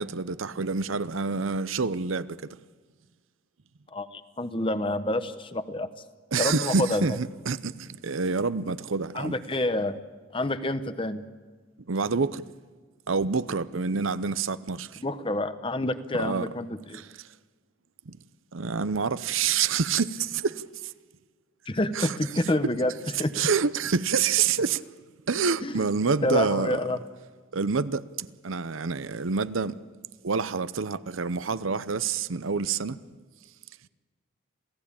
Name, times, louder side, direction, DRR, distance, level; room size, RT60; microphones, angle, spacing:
voice 1, 0.0-2.5 6.3-9.3 11.9-12.5 13.1-15.0 16.2-16.5 16.9-17.3 18.1-18.2 18.5-20.9 21.9-22.2 23.1-24.9 25.3-26.8 27.5-29.8 30.2-33.0, right 5 dB, 80° right, 0.7 m, -27 dB
voice 2, 3.9-5.9 6.4-7.1 9.1-10.0 10.3-11.2 15.0-17.0 21.7-22.9 23.2-23.3 25.6-25.9 26.2-27.0, left 1 dB, 25° left, 0.9 m, -28 dB
27.5 x 16.5 x 8.7 m
head